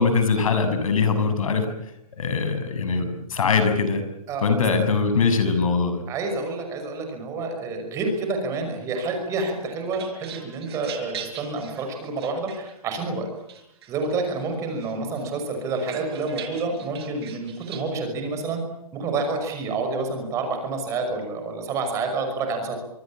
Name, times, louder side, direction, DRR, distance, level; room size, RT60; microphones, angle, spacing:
voice 1, 0.0-1.7 2.2-4.0 4.4-6.0, left 5 dB, 60° left, 9 dB, 6.7 m, -22 dB
voice 2, 6.1-13.3 13.9-18.6 18.9-22.8, right 3 dB, 15° right, 5 dB, 5.7 m, -28 dB
sound 1, 9.5-13.0 13.5-14.4 14.8-17.9, right 8 dB, 40° right, 5.4 m, -42 dB
26.0 x 23.5 x 8.8 m, 0.80 s
hypercardioid pair, 165°, 19 cm